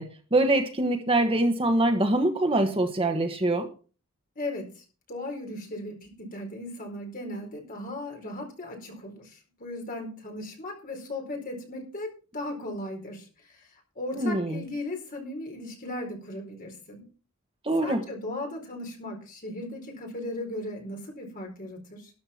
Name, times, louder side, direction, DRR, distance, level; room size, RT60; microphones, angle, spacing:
voice 1, 0.0-3.7 14.2-14.6 17.6-18.0, right 1 dB, 25° right, 1.3 m, -24 dB
voice 2, 4.4-17.1 17.8-22.1, left 1 dB, 40° left, 4.4 m, -37 dB
13.0 x 10.0 x 4.4 m
head